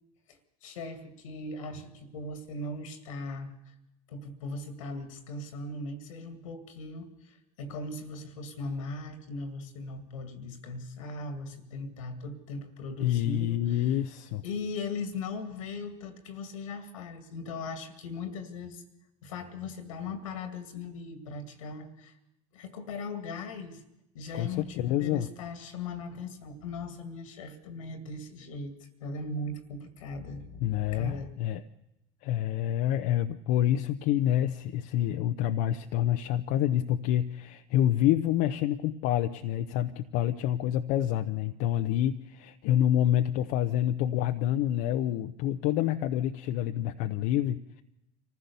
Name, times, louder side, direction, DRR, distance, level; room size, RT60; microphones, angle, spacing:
voice 1, 0.3-3.7 4.1-14.0 14.4-18.8 19.2-22.1 22.5-23.8 24.1-31.3, left 3 dB, 90° left, 10 dB, 2.2 m, -39 dB
voice 2, 13.0-14.4 24.3-25.3 30.6-31.6 32.2-47.8, left 12 dB, 70° left, 7 dB, 0.8 m, -27 dB
24.5 x 15.5 x 6.9 m, 0.87 s
hypercardioid pair, 75°, 17 cm